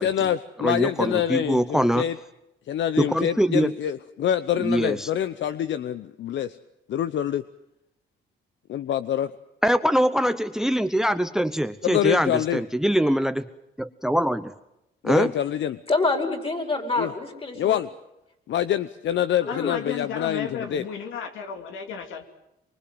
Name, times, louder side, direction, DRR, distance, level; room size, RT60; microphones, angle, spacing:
voice 1, 0.0-2.2 2.7-6.6 6.9-7.4 8.7-9.3 11.8-12.6 15.0-15.8 17.0-17.1 17.6-17.9 18.5-20.8, left 10 dB, 70° left, 13 dB, 0.8 m, -26 dB
voice 2, 0.6-2.1 3.0-3.7 4.6-5.1 9.6-13.5 13.8-14.5 15.0-15.3, equal, 5° right, 13 dB, 0.9 m, -23 dB
voice 3, 15.9-17.8 19.4-19.7, left 3 dB, 30° left, 4 dB, 5.1 m, -26 dB
voice 4, 19.4-22.2, left 7 dB, 85° left, 5 dB, 2.7 m, -33 dB
24.0 x 24.0 x 7.8 m, 0.89 s
cardioid pair, 90°, 20 cm